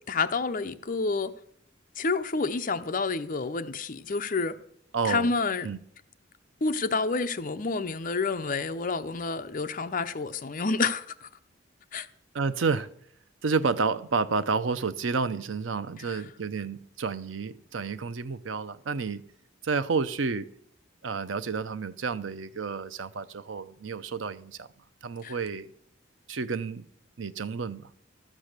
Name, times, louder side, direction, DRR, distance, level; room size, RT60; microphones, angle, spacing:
voice 1, 0.1-1.3 2.0-4.6 5.0-5.7 6.6-11.3 11.9-12.1 16.1-16.2 25.2-25.3, left 4 dB, 45° left, 0.6 m, -29 dB
voice 2, 4.9-5.3 5.6-5.8 12.3-12.9 13.4-19.2 19.6-20.5 21.0-24.7 25.0-25.7 26.3-26.8 27.2-27.9, right 4 dB, 85° right, 0.6 m, -30 dB
13.0 x 7.5 x 6.6 m
head